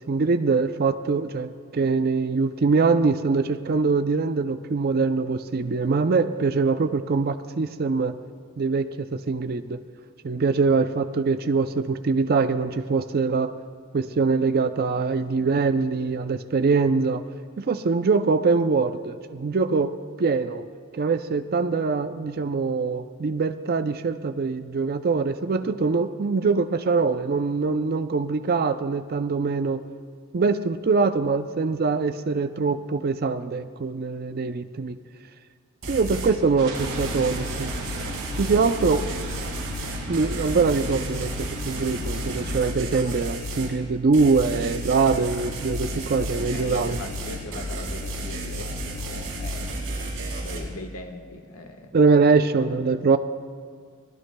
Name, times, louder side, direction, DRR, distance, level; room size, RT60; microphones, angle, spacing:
voice 1, 0.1-8.2 8.6-8.9 9.3-9.8 10.2-13.5 13.9-17.2 17.6-19.9 20.2-20.6 20.9-29.8 30.3-35.0 35.9-37.7 38.4-39.0 40.1-41.3 41.6-47.0 51.9-53.2, right 4 dB, 45° right, 9 dB, 0.4 m, -23 dB
sound 1, 35.8-36.4 36.7-43.7 44.1-50.6, equal, 70° right, 4.3 m, -32 dB
sound 2, 36.6-42.7, right 2 dB, 85° right, 3.6 m, -36 dB
voice 2, 46.5-49.7 50.4-51.9 52.5-52.8, left 2 dB, 75° left, 4 dB, 1.3 m, -40 dB
24.0 x 17.5 x 2.2 m, 2.1 s
head